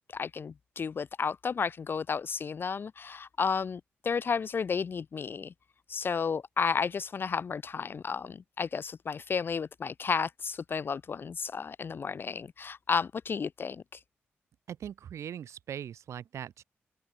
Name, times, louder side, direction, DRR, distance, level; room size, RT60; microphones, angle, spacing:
voice 1, 0.1-5.5 5.9-14.0, left 5 dB, 50° left, 0.3 m, -32 dB
voice 2, 14.7-16.6, right 9 dB, 80° right, 5.7 m, -40 dB
open air
supercardioid pair, 55°, 5 cm